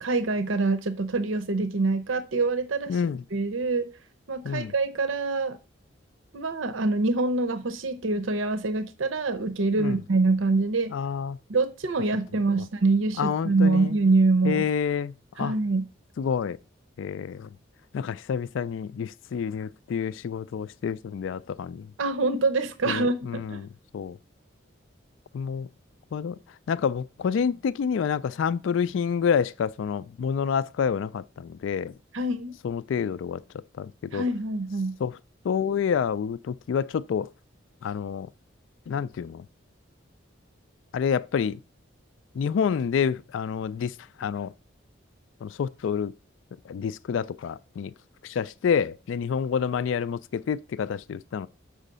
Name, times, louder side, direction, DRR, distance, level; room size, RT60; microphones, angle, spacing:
voice 1, 0.0-3.0 3.3-3.9 4.3-5.6 6.3-10.9 11.5-14.6 15.4-15.9 22.0-23.6 32.1-32.5 34.1-35.0, right 3 dB, 80° right, 0.7 m, -25 dB
voice 2, 2.9-3.2 4.4-4.7 9.8-10.0 10.9-11.4 13.2-13.9 14.4-15.5 16.2-16.6 17.0-17.5 17.9-21.9 22.9-23.7 23.9-24.2 25.3-25.7 26.1-26.4 26.7-31.9 32.6-33.4 33.8-34.2 35.0-35.2 35.4-37.3 37.8-38.3 38.9-39.4 40.9-41.6 42.3-44.5 45.4-46.1 46.7-47.9 48.2-51.5, left 7 dB, 75° left, 0.3 m, -28 dB
6.3 x 5.0 x 6.6 m
head